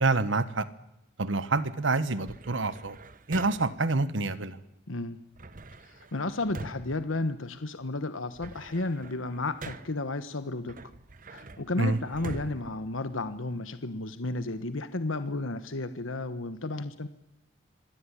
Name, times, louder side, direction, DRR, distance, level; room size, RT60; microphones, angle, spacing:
voice 1, 0.0-0.7 1.2-3.0 3.3-4.6 11.8-12.0, right 3 dB, 70° right, 14 dB, 1.2 m, -27 dB
sound 1, 2.3-3.9 5.3-7.8 8.2-10.1 10.7-13.7, right 2 dB, 40° right, 1.1 m, -44 dB
voice 2, 4.9-5.2 5.8-10.8 11.3-17.1, left 2 dB, 85° left, 11 dB, 1.3 m, -33 dB
26.5 x 17.5 x 10.0 m, 0.88 s
head